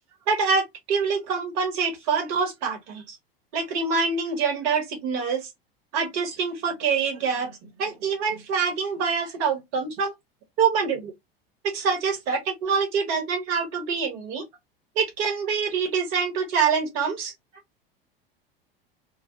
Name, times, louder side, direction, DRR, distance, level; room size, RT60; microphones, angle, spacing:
voice 1, 0.3-3.2 3.5-5.5 5.9-10.1 10.6-11.1 11.6-14.4 15.0-17.3, right 5 dB, 50° right, 1.0 m, -25 dB
2.1 x 2.0 x 2.8 m
figure-of-eight pair, 80°, 30 cm